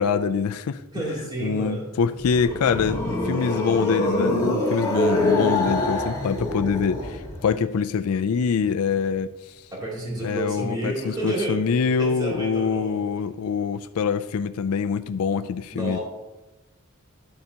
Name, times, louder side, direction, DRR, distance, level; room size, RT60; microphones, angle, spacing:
voice 1, 0.0-1.0 1.4-9.5 10.2-16.0, left 6 dB, 70° left, 11 dB, 0.4 m, -25 dB
voice 2, 0.9-1.9 9.7-11.6 12.0-12.9 15.7-16.0, right 2 dB, 20° right, -5 dB, 2.8 m, -30 dB
sound 1, 2.1-7.4, left 1 dB, 15° left, 2.1 m, -25 dB
12.0 x 6.6 x 2.8 m, 1.1 s
head